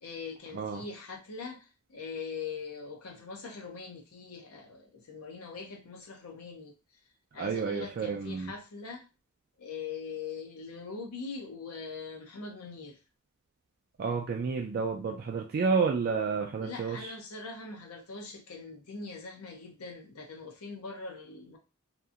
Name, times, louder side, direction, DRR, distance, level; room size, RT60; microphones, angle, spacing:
voice 1, 0.0-6.7 7.3-9.0 9.6-13.0 16.6-21.6, left 4 dB, 70° left, 2 dB, 0.6 m, -42 dB
voice 2, 7.4-8.5 14.0-17.1, right 5 dB, 45° right, 2 dB, 0.3 m, -30 dB
2.8 x 2.5 x 2.4 m, 0.30 s
head